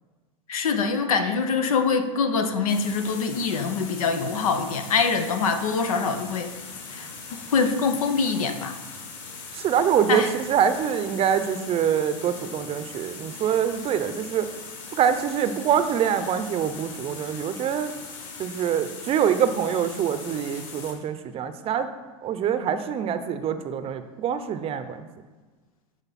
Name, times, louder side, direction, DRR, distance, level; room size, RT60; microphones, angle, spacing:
voice 1, 0.5-6.5 6.9-8.7 10.1-10.3, left 5 dB, 75° left, 8 dB, 1.0 m, -24 dB
sound 1, 2.7-20.9, left 4 dB, 45° left, 2.8 m, -40 dB
voice 2, 9.5-14.5 15.0-17.9 18.4-21.9 22.2-25.1, right 8 dB, 35° right, 10 dB, 0.7 m, -25 dB
13.0 x 5.1 x 4.2 m, 1.3 s
hypercardioid pair, 105°, 18 cm